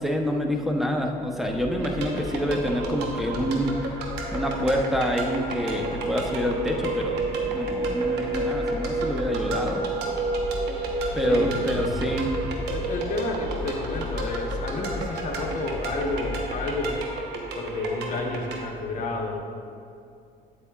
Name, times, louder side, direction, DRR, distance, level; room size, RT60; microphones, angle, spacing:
voice 1, 0.0-3.7 4.3-7.2 7.5-9.8 11.1-12.3, equal, ahead, 2 dB, 0.7 m, -27 dB
sound 1, 1.0-18.6, right 3 dB, 65° right, 0.7 m, -33 dB
sound 2, 1.5-16.9, left 2 dB, 75° left, 1.1 m, -37 dB
sound 3, 1.8-18.6, right 3 dB, 80° right, 1.0 m, -35 dB
voice 2, 12.7-17.0 17.5-19.4, left 2 dB, 50° left, 1 dB, 1.0 m, -30 dB
8.3 x 8.3 x 2.3 m, 2.5 s
cardioid pair, 110°, 17 cm